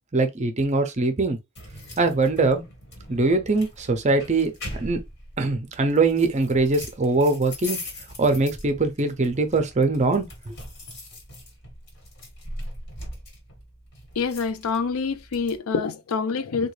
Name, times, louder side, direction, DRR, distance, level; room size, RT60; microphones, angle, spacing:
voice 1, 0.1-1.4 2.0-2.6 3.1-5.0 5.4-7.8 8.2-10.5, right 3 dB, 35° right, 0.6 m, -22 dB
sound 1, 1.6-15.6, left 1 dB, 50° left, 1.4 m, -41 dB
voice 2, 14.2-16.7, left 5 dB, 75° left, 0.5 m, -26 dB
3.7 x 2.3 x 3.1 m
head